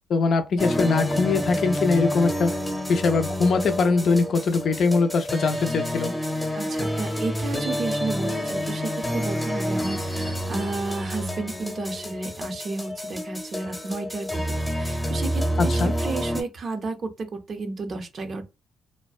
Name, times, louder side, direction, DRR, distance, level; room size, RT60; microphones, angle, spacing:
voice 1, 0.1-2.6 2.9-6.1 15.6-15.9, left 4 dB, 60° left, 0.4 m, -22 dB
sound 1, 0.6-16.4, equal, 10° left, 0.8 m, -28 dB
voice 2, 6.5-18.5, right 3 dB, 50° right, 0.5 m, -32 dB
2.5 x 2.1 x 2.3 m
cardioid pair, 90°, 0 cm